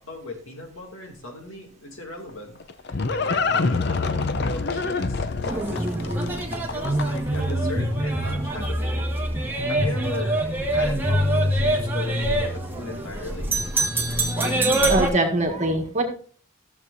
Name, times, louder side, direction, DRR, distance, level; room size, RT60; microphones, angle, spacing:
voice 1, 0.0-2.6 2.9-6.3 6.7-9.3 9.7-13.6, left 2 dB, 85° left, 1 dB, 2.5 m, -37 dB
Livestock farm animals working animals, 2.3-7.4, left 4 dB, 55° left, 0.6 m, -26 dB
sound 1, 5.4-15.1, right 1 dB, 10° right, 1.4 m, -24 dB
voice 2, 14.9-16.0, right 2 dB, 35° right, 2 dB, 1.7 m, -22 dB
14.5 x 7.3 x 2.6 m, 0.43 s
head